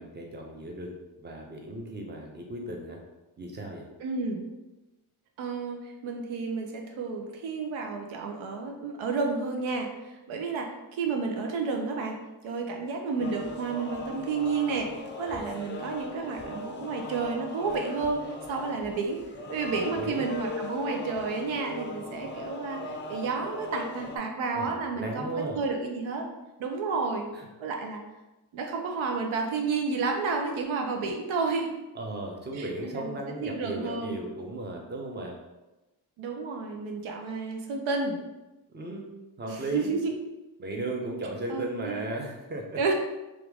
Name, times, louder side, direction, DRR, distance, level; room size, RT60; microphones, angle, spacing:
voice 1, 0.0-3.0 3.4-3.9 19.7-20.3 24.5-25.6 27.3-27.5 31.9-35.4 38.7-39.9 40.6-42.8, right 1 dB, 20° right, 1 dB, 0.7 m, -36 dB
voice 2, 4.0-4.4 5.4-12.2 12.4-14.9 15.2-19.2 19.5-26.2 26.6-27.3 27.6-28.0 28.5-31.7 32.5-34.2 36.2-38.2 39.4-40.1 41.5-42.1 42.8-42.9, right 4 dB, 80° right, 2 dB, 0.6 m, -31 dB
sound 1, 13.2-24.2, left 1 dB, 25° left, 0.4 m, -38 dB
2.9 x 2.5 x 3.4 m, 1.0 s
cardioid pair, 65°, 47 cm